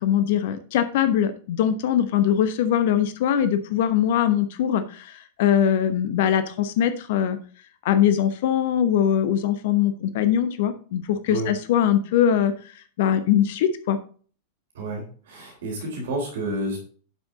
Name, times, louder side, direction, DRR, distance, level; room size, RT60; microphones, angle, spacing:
voice 1, 0.0-7.4 7.8-12.5 13.0-14.0, left 9 dB, 55° left, 11 dB, 1.0 m, -22 dB
voice 2, 14.7-16.8, right 1 dB, 60° right, 0 dB, 3.7 m, -30 dB
11.5 x 6.1 x 3.9 m, 0.41 s
figure-of-eight pair, 90°, 0 cm